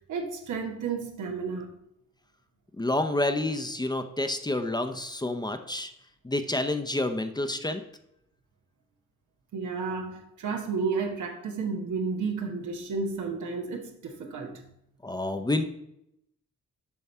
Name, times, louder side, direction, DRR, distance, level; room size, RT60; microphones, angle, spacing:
voice 1, 0.1-1.8 9.5-14.6, right 4 dB, 85° right, 1.2 m, -32 dB
voice 2, 2.8-5.9 6.2-7.8 15.0-15.6, left 2 dB, 15° left, 0.7 m, -28 dB
7.2 x 5.4 x 4.4 m
cardioid pair, 70°, 29 cm